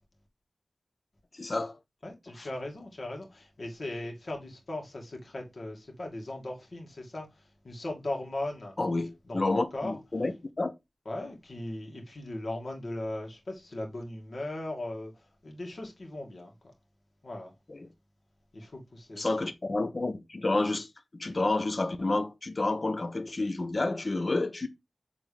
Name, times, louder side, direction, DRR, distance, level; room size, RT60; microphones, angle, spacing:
voice 1, 1.3-1.8 2.4-2.5 8.8-10.3 10.6-10.7 17.7-17.9 19.2-20.9 21.1-24.7, left 2 dB, 50° left, 0.9 m, -29 dB
voice 2, 2.0-8.7 9.3-10.0 11.1-16.5 17.2-17.5 18.5-19.2, left 1 dB, 65° left, 2.4 m, -38 dB
7.3 x 3.7 x 3.4 m
wide cardioid pair, 80°, 0 cm